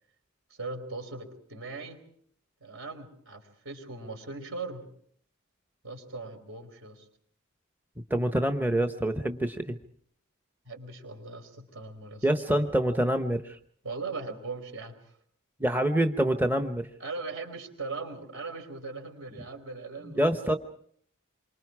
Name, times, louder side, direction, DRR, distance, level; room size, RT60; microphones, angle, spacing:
voice 1, 0.5-2.0 2.6-4.9 5.8-7.1 10.6-12.6 13.8-15.2 17.0-20.6, right 3 dB, 65° right, 6 dB, 4.7 m, -39 dB
voice 2, 8.1-9.8 12.2-13.6 15.6-16.9 20.1-20.6, right 1 dB, 10° right, 6 dB, 0.9 m, -26 dB
28.0 x 25.0 x 4.8 m, 0.62 s
head